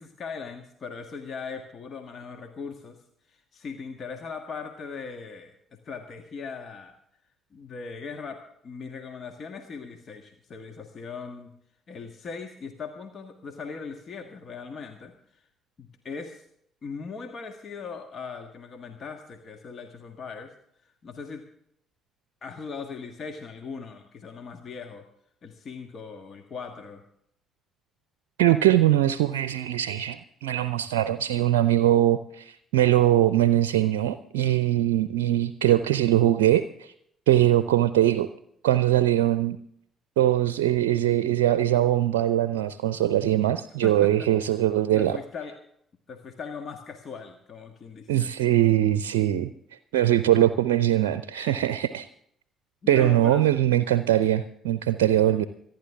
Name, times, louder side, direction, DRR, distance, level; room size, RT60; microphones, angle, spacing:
voice 1, 0.0-3.0 3.3-6.9 7.5-11.5 11.9-15.4 15.8-16.4 16.8-20.5 21.0-21.4 22.4-25.0 25.4-27.0 43.8-44.1 44.9-45.6 46.1-48.3 52.8-53.4, left 5 dB, 45° left, 5 dB, 1.6 m, -39 dB
voice 2, 28.4-36.9 37.3-38.3 38.6-39.6 40.2-45.2 48.1-49.5 49.9-52.1 52.9-55.4, right 13 dB, 70° right, 13 dB, 0.5 m, -22 dB
26.0 x 10.5 x 3.6 m, 0.70 s
figure-of-eight pair, 45°, 0 cm